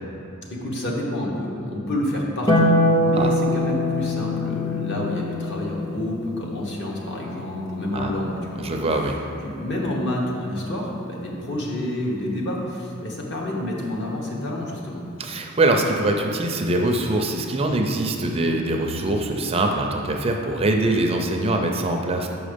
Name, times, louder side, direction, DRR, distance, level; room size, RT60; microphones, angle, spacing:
voice 1, 0.5-8.7 9.4-15.0, left 1 dB, 55° left, -3 dB, 1.2 m, -28 dB
Harp, 2.5-9.0 10.6-11.6, left 1 dB, 20° left, 0.7 m, -25 dB
voice 2, 8.6-9.2 15.2-22.3, right 2 dB, 25° right, 2 dB, 0.4 m, -23 dB
6.0 x 5.2 x 5.0 m, 2.9 s
head